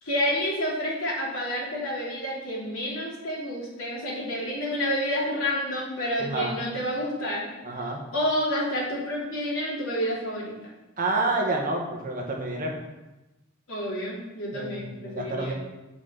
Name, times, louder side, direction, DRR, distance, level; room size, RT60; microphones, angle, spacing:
voice 1, 0.0-7.4 8.1-10.5 13.7-15.5, equal, 75° left, -5 dB, 3.3 m, -29 dB
voice 2, 6.2-6.6 7.6-8.0 11.0-12.7 14.5-15.5, right 2 dB, 40° right, 0 dB, 1.5 m, -28 dB
7.9 x 6.0 x 5.9 m, 1.0 s
head